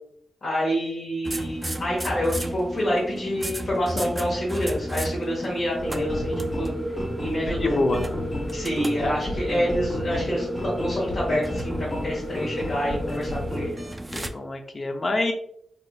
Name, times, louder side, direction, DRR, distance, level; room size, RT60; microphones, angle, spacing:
voice 1, 0.4-6.7 7.2-7.8 8.5-13.8, equal, 60° left, -6 dB, 1.3 m, -27 dB
sound 1, 1.2-14.3, right 1 dB, 20° right, 0.4 m, -35 dB
sound 2, 5.8-13.7, equal, 20° left, 0.9 m, -30 dB
voice 2, 7.3-8.0 14.1-15.3, left 2 dB, 45° left, 4 dB, 0.6 m, -26 dB
4.1 x 2.8 x 2.3 m, 0.71 s
cardioid pair, 60°, 0 cm